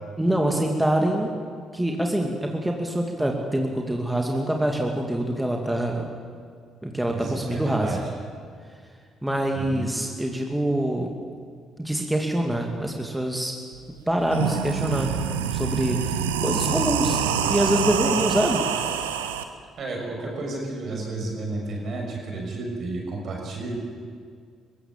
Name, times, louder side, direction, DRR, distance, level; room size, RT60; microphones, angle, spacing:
voice 1, 0.2-1.3 1.7-6.1 6.8-8.0 9.2-11.1 11.8-13.5 14.1-15.1 15.5-18.6, right 1 dB, 10° right, 1 dB, 2.5 m, -25 dB
voice 2, 7.1-8.0 9.5-9.9 19.8-23.7, right 2 dB, 55° right, 0 dB, 6.2 m, -32 dB
sound 1, 13.7-13.8 14.2-19.4, right 7 dB, 90° right, 0.9 m, -26 dB
22.5 x 15.5 x 7.6 m, 2.1 s
hypercardioid pair, 50°, 0 cm